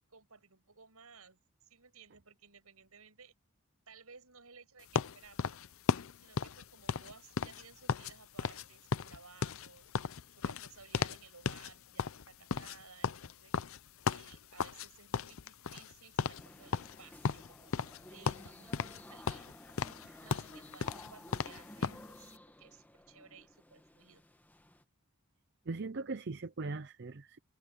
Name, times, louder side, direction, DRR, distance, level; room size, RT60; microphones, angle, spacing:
voice 1, 0.1-3.3 3.9-5.5 6.2-9.9 10.3-13.5 14.1-19.5 20.2-24.2, right 5 dB, 85° right, 6.5 m, -58 dB
sound 1, 4.9-8.1 8.4-8.7 8.9-11.2 11.5-11.7 12.0-14.9 15.1-15.9 16.2-16.4 16.7-18.0 18.3-19.0 19.3-22.0, left 5 dB, 70° left, 0.6 m, -35 dB
sound 2, 16.4-24.8, left 1 dB, 10° left, 1.7 m, -54 dB
voice 2, 25.7-27.4, right 3 dB, 50° right, 0.6 m, -40 dB
head